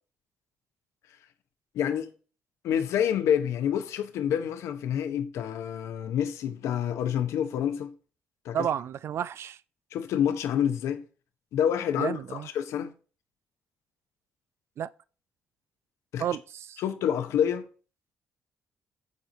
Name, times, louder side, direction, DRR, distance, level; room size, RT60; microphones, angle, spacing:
voice 1, 1.7-2.1 2.6-7.9 8.4-8.6 9.9-11.0 11.5-12.9 16.1-16.2 16.8-17.7, left 9 dB, 70° left, 0.7 m, -28 dB
voice 2, 8.5-9.6 12.0-12.5 14.8-14.9 16.2-16.8, right 9 dB, 60° right, 0.3 m, -31 dB
7.4 x 3.8 x 4.3 m
hypercardioid pair, 50°, 5 cm